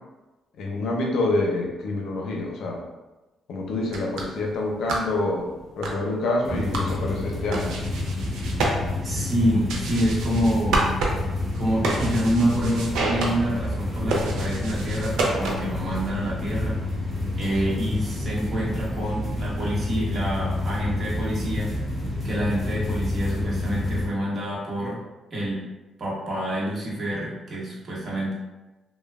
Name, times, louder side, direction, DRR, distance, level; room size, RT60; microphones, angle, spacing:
voice 1, 0.6-2.8 3.5-5.5 5.8-7.8, left 2 dB, 70° left, 0 dB, 0.5 m, -27 dB
sound 1, 3.8-15.8, right 2 dB, 90° right, 0.4 m, -30 dB
sound 2, 6.4-24.1, left 2 dB, 10° right, 0.8 m, -29 dB
voice 2, 9.0-10.9 11.5-16.8 17.4-21.7 22.2-25.0 25.3-25.7 26.0-28.3, equal, 40° right, -6 dB, 0.9 m, -27 dB
3.0 x 2.0 x 2.3 m, 1.1 s
cardioid pair, 100°, 0 cm